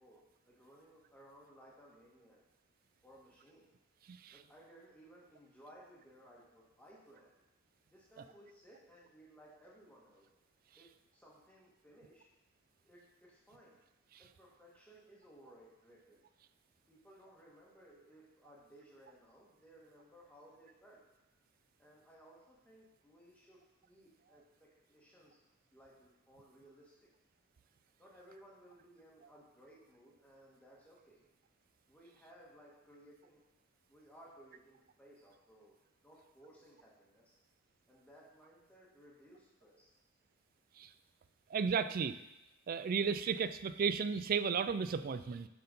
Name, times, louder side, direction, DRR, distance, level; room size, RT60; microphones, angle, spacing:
voice 1, 0.0-2.4 3.0-3.7 4.3-7.4 7.9-10.3 10.7-12.3 12.8-13.8 14.2-16.2 16.9-21.0 21.8-25.4 25.7-27.1 28.0-31.2 31.9-33.4 33.9-35.7 36.0-37.3 37.9-39.9, equal, 5° left, -5 dB, 1.5 m, -60 dB
voice 2, 41.5-42.2 42.7-45.5, right 6 dB, 40° right, 13 dB, 0.3 m, -34 dB
7.7 x 4.4 x 5.4 m, 0.96 s
head